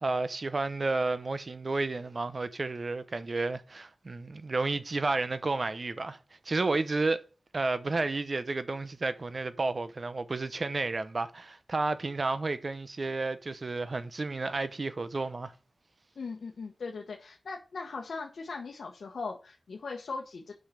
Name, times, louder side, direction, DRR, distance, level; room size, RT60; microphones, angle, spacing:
voice 1, 0.0-6.2 6.4-7.2 7.5-15.5, right 3 dB, 50° right, 0.8 m, -31 dB
voice 2, 16.1-20.5, left 4 dB, 90° left, 1.2 m, -39 dB
7.3 x 5.6 x 6.8 m
wide cardioid pair, 85°, 0 cm